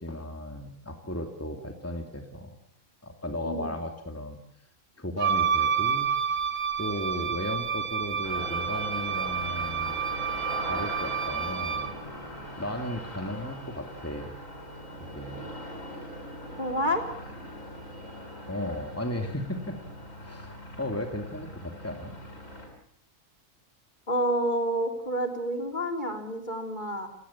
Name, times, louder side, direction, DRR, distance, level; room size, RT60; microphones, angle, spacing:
voice 1, 0.0-2.5 3.0-4.4 5.0-6.2 6.8-10.0 10.3-11.9 12.6-14.3 15.1-15.5 18.5-19.8 20.2-22.2, left 1 dB, 10° left, 4 dB, 2.7 m, -35 dB
Wind instrument woodwind instrument, 5.2-12.0, right 7 dB, 85° right, 2.3 m, -29 dB
sound 1, 8.2-22.7, equal, 75° left, 8.6 m, -41 dB
voice 2, 16.6-17.0 24.1-27.1, equal, 35° left, 5 dB, 3.8 m, -29 dB
29.0 x 18.0 x 7.3 m, 0.72 s
omnidirectional pair, 1.4 m